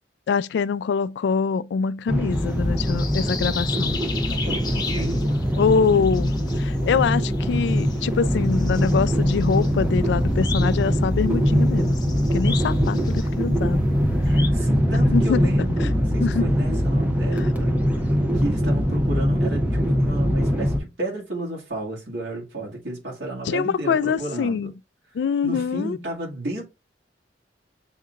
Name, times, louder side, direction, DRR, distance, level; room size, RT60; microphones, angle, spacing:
voice 1, 0.3-4.0 5.6-13.8 15.1-15.5 15.8-15.9 16.2-16.5 17.3-17.5 23.5-24.7 25.1-26.0, left 5 dB, 75° left, 0.3 m, -24 dB
sound 1, 2.1-20.8, equal, 10° right, 0.8 m, -22 dB
sound 2, 2.3-14.5, left 5 dB, 25° left, 1.0 m, -37 dB
voice 2, 4.3-5.4 14.2-17.8 18.3-24.7 25.4-26.7, right 1 dB, 80° right, 2.0 m, -32 dB
7.2 x 2.8 x 2.5 m
head